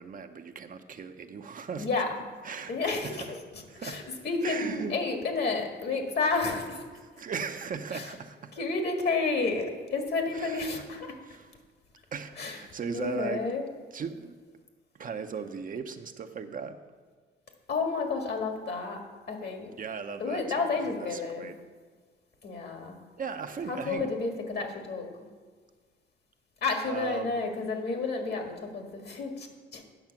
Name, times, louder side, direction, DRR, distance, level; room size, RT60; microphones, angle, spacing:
voice 1, 0.0-1.9 2.4-3.3 3.7-4.0 4.4-5.0 7.0-8.6 10.3-10.9 11.2-11.5 12.1-13.5 13.9-14.4 15.0-16.8 19.8-21.6 23.2-24.1 26.8-27.5, right 6 dB, 45° right, 7 dB, 0.6 m, -38 dB
voice 2, 1.8-2.2 2.7-3.4 3.8-6.8 7.9-8.1 8.6-11.1 12.4-12.6 12.9-13.6 17.7-19.0 19.3-19.7 20.2-21.5 22.4-23.0 23.7-25.1 26.6-29.5 29.7-29.8, left 4 dB, 55° left, 3 dB, 1.8 m, -30 dB
9.0 x 6.5 x 5.9 m, 1.5 s
cardioid pair, 90°, 20 cm